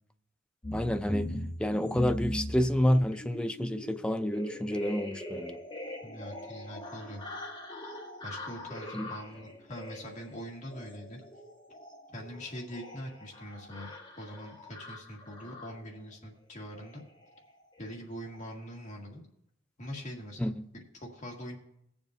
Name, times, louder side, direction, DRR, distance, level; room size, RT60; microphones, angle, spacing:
sound 1, 0.6-16.0 16.7-17.0 17.3-17.5 17.8-18.0 18.2-18.5, left 1 dB, 25° left, 1.6 m, -41 dB
voice 1, 0.7-1.3 1.6-5.6 8.9-9.1 20.4-20.5, equal, 5° left, 0.3 m, -29 dB
voice 2, 6.0-7.2 8.2-11.2 12.1-13.9 14.2-17.0 17.8-19.3 19.8-21.6, equal, 40° left, 1.8 m, -43 dB
19.5 x 7.1 x 2.6 m
head